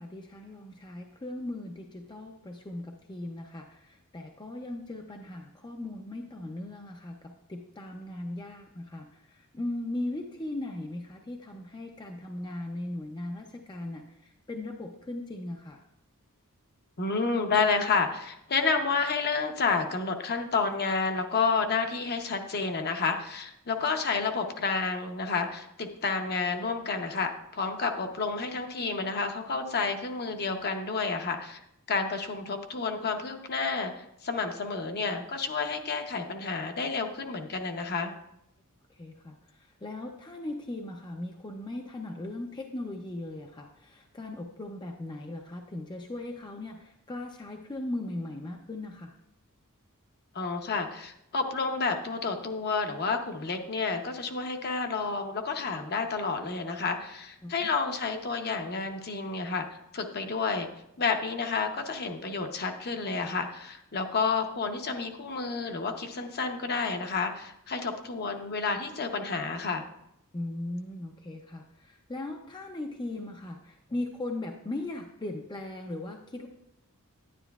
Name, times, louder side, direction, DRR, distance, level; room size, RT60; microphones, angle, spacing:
voice 1, 0.0-15.8 39.0-39.4 39.8-49.1 57.4-57.5 70.3-76.5, left 1 dB, 20° left, 2 dB, 0.5 m, -38 dB
voice 2, 17.0-31.6 31.9-38.1 50.3-59.7 59.9-60.7 61.0-69.8, left 4 dB, 45° left, 5 dB, 0.8 m, -30 dB
10.0 x 10.0 x 2.3 m, 0.82 s
head